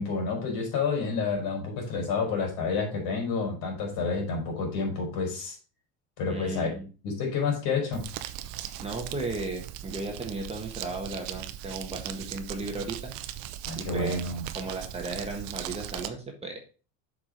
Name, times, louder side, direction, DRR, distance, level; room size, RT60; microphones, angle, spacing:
voice 1, 0.0-5.5 6.2-6.7 7.0-8.0 13.7-14.4, left 4 dB, 55° left, 1 dB, 4.3 m, -29 dB
voice 2, 6.3-6.9 8.8-13.1 13.8-14.2 14.5-16.6, right 3 dB, 15° right, 2 dB, 1.4 m, -35 dB
Crumpling crinkling, 7.9-16.1, right 12 dB, 60° right, 0.8 m, -39 dB
7.3 x 5.0 x 4.9 m, 0.35 s
cardioid pair, 140°, 40 cm